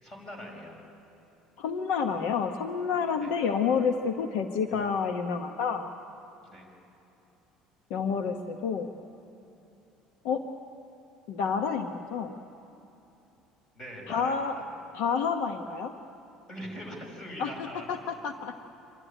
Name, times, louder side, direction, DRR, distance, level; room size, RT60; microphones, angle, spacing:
voice 1, 0.0-0.8 3.1-3.3 6.4-6.7 13.7-14.7 16.5-18.2, equal, 30° left, 0 dB, 5.9 m, -42 dB
voice 2, 1.6-5.8 7.9-8.9 10.2-10.4 11.3-12.4 14.1-14.6 14.9-15.9 17.4-17.5 17.9-18.6, left 6 dB, 80° left, 6 dB, 1.0 m, -29 dB
26.5 x 13.0 x 10.0 m, 2.9 s
cardioid pair, 145°, 2 cm